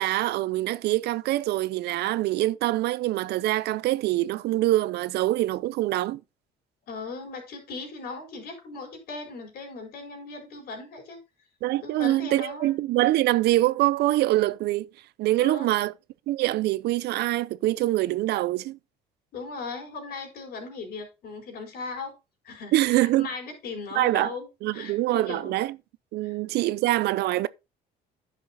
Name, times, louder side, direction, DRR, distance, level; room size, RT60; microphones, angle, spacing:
voice 1, 0.0-6.2 11.6-14.9 15.2-15.9 16.3-18.8 22.7-23.3 23.9-24.3 24.6-25.8 26.1-27.5, right 16 dB, 75° right, 0.6 m, -24 dB
voice 2, 6.9-11.2 11.8-12.8 15.4-15.7 19.3-22.1 22.4-25.6 26.2-26.4, left 4 dB, 65° left, 4.8 m, -38 dB
10.5 x 6.2 x 4.1 m
cardioid pair, 110°, 17 cm